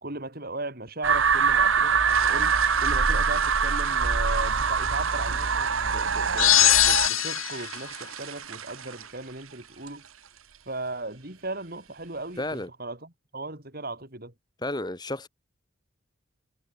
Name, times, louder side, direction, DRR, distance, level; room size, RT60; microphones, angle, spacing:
voice 1, 0.0-10.1 10.7-14.3, right 2 dB, 45° right, 3.6 m, -37 dB
sound 1, 1.0-7.1, right 5 dB, 65° right, 1.4 m, -24 dB
sound 2, 2.1-12.6, right 8 dB, 80° right, 1.7 m, -41 dB
sound 3, 6.4-7.8, left 15 dB, 75° left, 1.1 m, -20 dB
voice 2, 12.4-12.7 14.6-15.3, left 1 dB, 20° left, 2.0 m, -31 dB
head